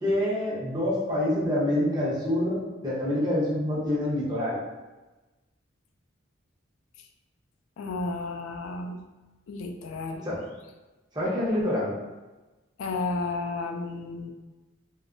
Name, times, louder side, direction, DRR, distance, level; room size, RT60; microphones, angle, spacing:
voice 1, 0.0-4.6 10.2-10.4 11.1-11.9, left 1 dB, 20° right, -8 dB, 0.8 m, -26 dB
voice 2, 7.8-9.0 9.5-10.2 12.8-14.3, left 3 dB, 75° left, 3 dB, 0.3 m, -32 dB
2.3 x 2.0 x 3.7 m, 1.1 s
head